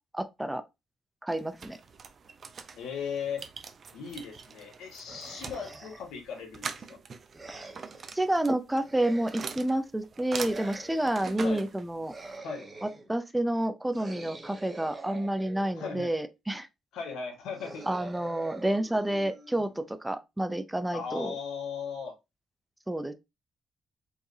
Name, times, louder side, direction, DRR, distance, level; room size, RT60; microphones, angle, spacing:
voice 1, 0.1-0.6 1.2-1.8 8.1-12.1 12.8-16.7 17.9-21.3 22.9-23.1, right 1 dB, 10° right, 0.6 m, -29 dB
sound 1, 1.3-12.4, right 5 dB, 45° right, 0.7 m, -43 dB
voice 2, 2.7-3.4 3.9-7.0 11.4-11.6 12.4-12.7 15.7-16.1 16.9-17.9 20.9-22.1, left 6 dB, 85° left, 1.6 m, -37 dB
sound 2, 5.1-6.2 7.3-8.1 8.8-9.8 10.4-11.3 12.0-13.1 13.9-16.0 17.5-19.9, right 3 dB, 25° right, 1.2 m, -45 dB
4.6 x 3.2 x 2.8 m
cardioid pair, 90°, 0 cm